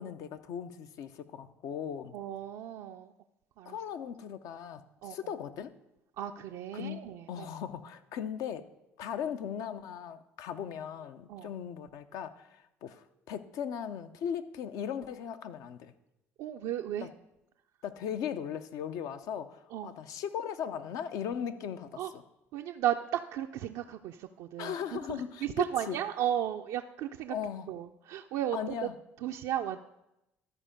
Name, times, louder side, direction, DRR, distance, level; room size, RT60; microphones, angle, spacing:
voice 1, 0.0-2.2 3.7-5.7 6.7-7.0 7.3-8.7 9.0-15.9 17.0-17.1 17.8-22.2 24.6-26.0 27.3-27.7 28.5-28.9, left 8 dB, 70° left, 10 dB, 0.6 m, -38 dB
voice 2, 2.1-3.1 3.6-3.8 5.0-5.2 6.2-7.5 11.3-11.5 16.4-17.1 19.7-19.9 22.0-22.1 22.5-27.3 27.7-28.6 29.2-29.8, right 11 dB, 75° right, 3 dB, 0.4 m, -34 dB
12.5 x 4.5 x 5.1 m, 0.89 s
supercardioid pair, 70°, 6 cm